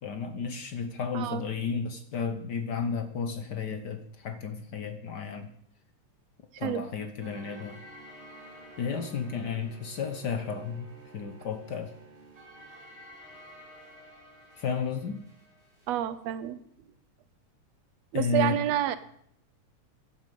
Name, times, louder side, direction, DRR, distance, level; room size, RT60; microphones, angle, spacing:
voice 1, 0.0-5.5 6.6-7.8 8.8-10.9 11.1-11.9 14.6-15.2 18.1-18.6, left 5 dB, 65° left, 8 dB, 1.0 m, -32 dB
sound 1, 7.2-16.0, right 1 dB, 20° right, 4.9 m, -51 dB
voice 2, 15.9-16.6 18.1-19.0, right 12 dB, 70° right, 14 dB, 1.8 m, -29 dB
16.0 x 11.5 x 5.5 m, 0.70 s
omnidirectional pair, 3.3 m